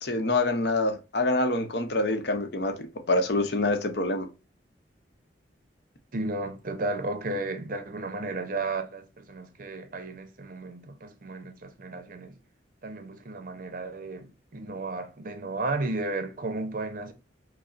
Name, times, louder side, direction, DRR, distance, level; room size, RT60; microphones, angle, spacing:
voice 1, 0.0-4.3, left 2 dB, 65° left, 0.7 m, -26 dB
voice 2, 6.1-12.4 12.8-17.1, right 2 dB, 50° right, 0.6 m, -33 dB
5.2 x 2.0 x 2.4 m
head